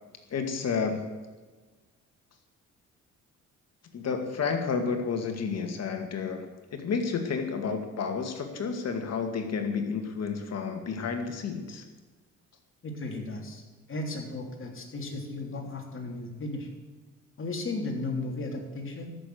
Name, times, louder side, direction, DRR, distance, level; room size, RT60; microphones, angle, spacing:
voice 1, 0.3-1.1 3.9-6.4 6.7-11.8, left 5 dB, 60° left, 5 dB, 2.2 m, -31 dB
voice 2, 12.8-13.6 13.9-16.7 17.4-19.2, left 2 dB, 45° left, 1 dB, 3.3 m, -35 dB
13.5 x 6.8 x 9.4 m, 1.3 s
cardioid pair, 90°, 30 cm